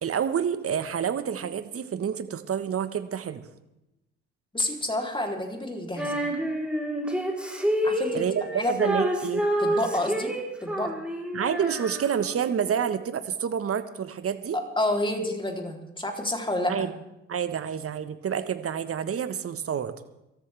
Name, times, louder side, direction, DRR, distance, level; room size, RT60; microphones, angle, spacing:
voice 1, 0.0-3.4 8.1-9.5 11.3-14.6 16.7-16.9 17.3-19.9, right 8 dB, 40° right, 11 dB, 1.4 m, -28 dB
voice 2, 4.5-6.2 7.8-8.2 8.5-8.8 9.6-10.3 10.6-10.9 14.5-16.9, left 1 dB, 15° left, 2 dB, 3.6 m, -29 dB
Female singing, 6.0-12.5, right 1 dB, 5° right, 4.1 m, -28 dB
24.5 x 13.5 x 3.5 m, 0.93 s
hypercardioid pair, 55°, 35 cm